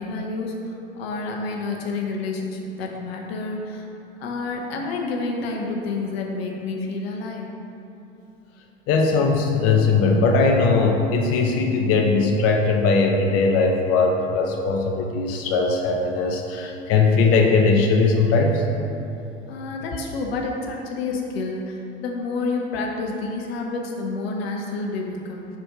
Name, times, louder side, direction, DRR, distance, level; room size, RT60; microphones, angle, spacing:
voice 1, 0.0-3.8 4.2-7.5 19.5-25.5, left 3 dB, 75° left, 0 dB, 1.0 m, -29 dB
voice 2, 8.9-18.7, left 4 dB, 50° left, 1 dB, 0.8 m, -19 dB
5.9 x 4.4 x 5.0 m, 2.9 s
hypercardioid pair, 80°, 30 cm